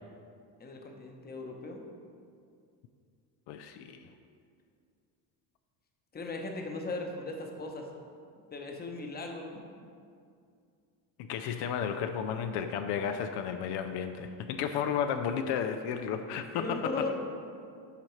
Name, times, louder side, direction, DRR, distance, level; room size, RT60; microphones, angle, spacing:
voice 1, 0.6-1.9 6.1-7.9 8.5-9.5 16.5-17.1, left 3 dB, 25° left, 2 dB, 0.8 m, -37 dB
voice 2, 3.5-4.1 11.2-16.9, left 7 dB, 75° left, 7 dB, 0.5 m, -33 dB
12.0 x 4.3 x 3.1 m, 2.3 s
cardioid pair, 120°, 41 cm